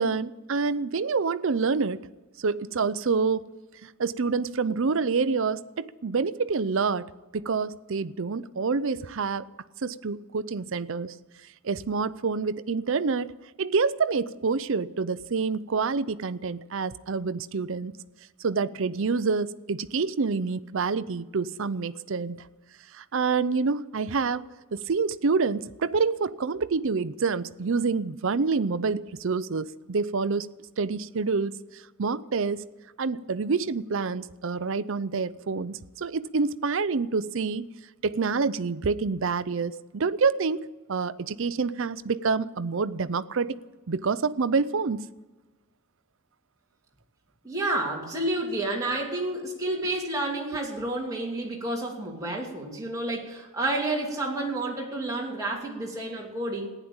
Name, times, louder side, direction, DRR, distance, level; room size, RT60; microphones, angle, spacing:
voice 1, 0.0-2.0 2.4-3.4 3.8-9.5 9.8-11.1 11.6-13.3 13.6-17.9 18.4-22.4 22.9-30.5 30.8-32.6 33.0-37.7 38.0-43.6 43.9-45.1, right 4 dB, 60° right, 0.5 m, -27 dB
voice 2, 47.4-56.7, right 2 dB, 15° right, 2.8 m, -30 dB
15.0 x 10.5 x 8.7 m
head